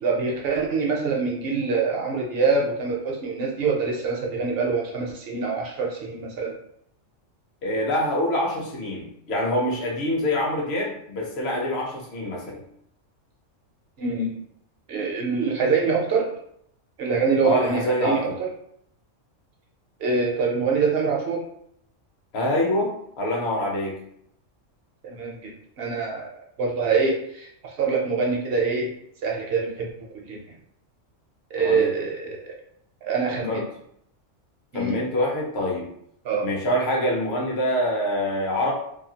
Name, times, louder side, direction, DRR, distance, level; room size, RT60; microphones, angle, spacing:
voice 1, 0.0-6.5 14.0-14.3 14.9-16.3 17.0-18.3 20.0-21.4 25.0-26.3 26.6-28.9 29.2-29.9 30.1-30.4 31.5-32.5 33.0-33.7 34.7-35.0 36.2-36.5, right 4 dB, 60° right, -1 dB, 0.7 m, -25 dB
voice 2, 7.6-12.6 17.4-18.3 22.3-22.9 23.2-24.0 31.6-31.9 33.5-33.6 34.7-35.9 36.4-38.7, left 1 dB, 60° left, -2 dB, 1.0 m, -25 dB
2.8 x 2.3 x 2.7 m, 0.72 s
omnidirectional pair, 1.3 m